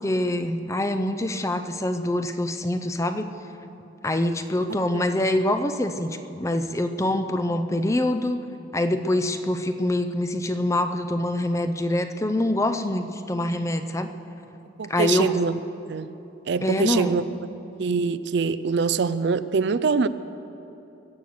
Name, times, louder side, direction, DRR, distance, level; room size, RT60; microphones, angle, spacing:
voice 1, 0.0-3.3 4.0-8.4 8.7-14.1 14.9-15.3 16.6-17.2, left 1 dB, 15° left, 9 dB, 0.6 m, -25 dB
voice 2, 4.7-5.1 14.8-15.6 15.9-16.1 16.5-17.2 17.8-20.1, right 5 dB, 60° right, 14 dB, 0.4 m, -24 dB
23.0 x 8.2 x 6.5 m, 2.9 s
head